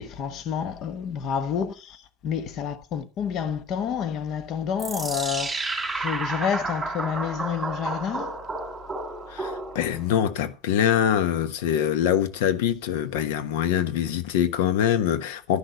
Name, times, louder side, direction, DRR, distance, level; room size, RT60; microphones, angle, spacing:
voice 1, 0.0-5.5 5.9-8.4, left 8 dB, 40° left, 1.3 m, -29 dB
Time Slow Down, 4.8-10.1, right 3 dB, 10° right, 4.0 m, -31 dB
voice 2, 9.3-15.6, left 9 dB, 80° left, 1.2 m, -24 dB
12.0 x 6.4 x 8.1 m
supercardioid pair, 150°, 0 cm